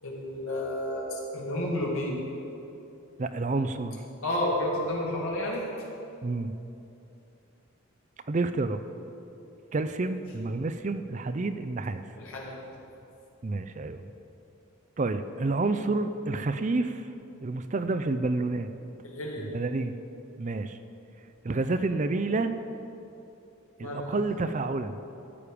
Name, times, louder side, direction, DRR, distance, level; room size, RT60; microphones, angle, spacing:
voice 1, 0.0-2.2 4.2-5.6 12.2-12.6 19.0-19.6 23.8-24.2, left 1 dB, 80° left, -3 dB, 2.4 m, -31 dB
voice 2, 3.2-4.0 6.2-6.5 8.3-8.8 9.7-12.0 13.4-14.0 15.0-17.1 17.4-18.7 19.4-20.0 20.4-20.8 21.4-22.5 23.8-24.9, right 3 dB, 35° right, 10 dB, 0.4 m, -29 dB
13.5 x 8.5 x 5.1 m, 2.8 s
head